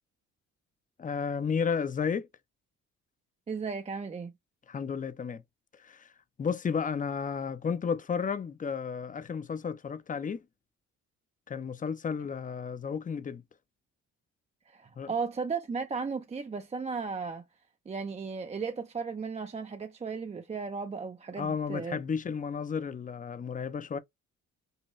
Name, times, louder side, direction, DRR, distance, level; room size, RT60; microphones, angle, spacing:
voice 1, 1.0-2.3 4.7-5.4 5.8-6.1 6.4-10.4 11.5-13.4 15.0-15.1 21.3-24.0, left 6 dB, 25° left, 0.5 m, -32 dB
voice 2, 3.5-4.3 14.7-17.4 17.9-22.0, right 5 dB, 20° right, 0.5 m, -35 dB
5.5 x 2.2 x 3.0 m
cardioid pair, 90°, 30 cm